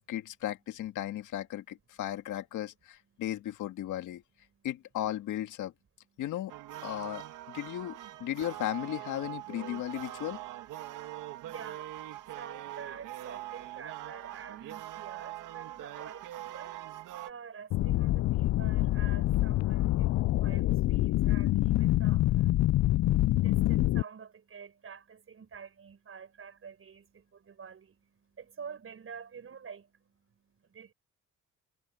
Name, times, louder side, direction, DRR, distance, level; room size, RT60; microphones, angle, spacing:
voice 1, 0.0-4.2 4.6-5.7 6.2-6.5 6.8-10.4 17.9-18.2, left 12 dB, 80° left, 2.1 m, -36 dB
sound 1, 6.5-17.3, right 14 dB, 90° right, 2.0 m, -43 dB
voice 2, 10.8-30.9, right 6 dB, 45° right, 6.6 m, -49 dB
sound 2, 17.7-24.0, left 15 dB, 60° left, 0.4 m, -26 dB
cardioid pair, 90°, 30 cm